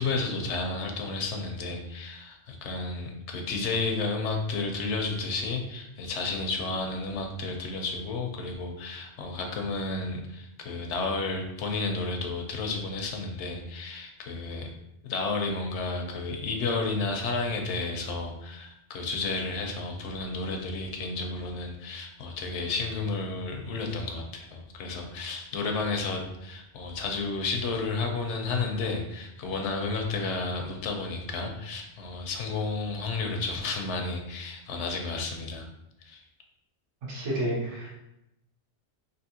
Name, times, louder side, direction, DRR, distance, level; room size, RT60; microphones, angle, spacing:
voice 1, 0.0-14.7 15.0-35.7 36.0-36.2, left 3 dB, 80° left, 3 dB, 0.9 m, -32 dB
voice 2, 37.1-37.9, right 1 dB, 85° right, -4 dB, 1.3 m, -30 dB
3.4 x 2.6 x 2.8 m, 0.86 s
omnidirectional pair, 1.2 m